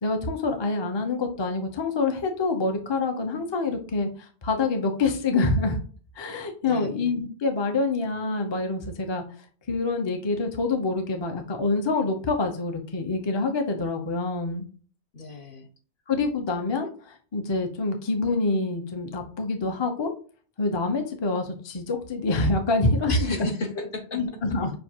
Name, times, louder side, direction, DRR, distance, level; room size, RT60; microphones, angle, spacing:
voice 1, 0.0-5.8 6.2-9.2 9.7-14.6 16.1-16.9 17.3-20.1 20.6-23.4 24.1-24.7, left 3 dB, 30° left, 4 dB, 0.6 m, -26 dB
voice 2, 6.6-7.1 15.1-15.7 23.1-24.4, left 3 dB, 55° left, 4 dB, 0.9 m, -35 dB
6.4 x 2.5 x 2.8 m, 0.40 s
omnidirectional pair, 1.2 m